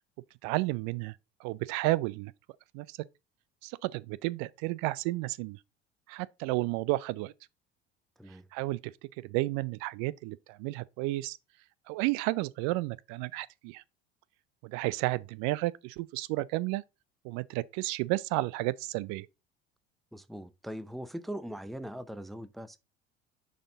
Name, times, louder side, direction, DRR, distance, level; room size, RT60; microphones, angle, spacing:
voice 1, 0.4-1.2 1.4-2.3 2.7-3.0 3.6-5.6 6.1-7.3 8.5-8.9 9.2-11.4 11.9-13.8 14.6-16.8 17.2-19.3, right 20 dB, 60° right, 0.4 m, -32 dB
voice 2, 20.1-22.8, equal, ahead, 0.5 m, -41 dB
6.4 x 4.1 x 3.9 m
hypercardioid pair, 70°, 33 cm